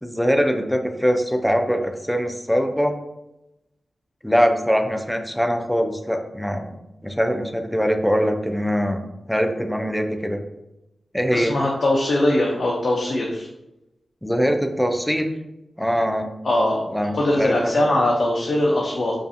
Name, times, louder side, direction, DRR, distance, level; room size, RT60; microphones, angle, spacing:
voice 1, 0.0-2.9 4.2-6.8 7.0-10.4 11.1-11.6 14.2-15.3 15.8-16.3 16.9-17.9, equal, 5° left, 5 dB, 0.3 m, -22 dB
voice 2, 11.3-13.5 16.4-16.8 17.1-19.1, left 1 dB, 65° left, -3 dB, 0.5 m, -21 dB
2.5 x 2.3 x 2.5 m, 0.92 s
cardioid pair, 50°, 0 cm